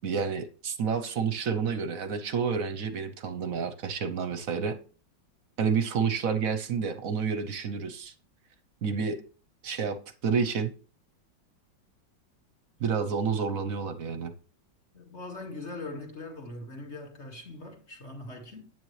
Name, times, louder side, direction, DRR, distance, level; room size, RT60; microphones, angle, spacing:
voice 1, 0.0-4.8 5.6-8.1 8.8-9.2 9.6-10.0 10.2-10.7 12.8-14.3, right 6 dB, 55° right, 1.1 m, -29 dB
voice 2, 14.9-18.7, left 2 dB, 35° left, 2.3 m, -41 dB
9.4 x 8.8 x 3.2 m
omnidirectional pair, 2.0 m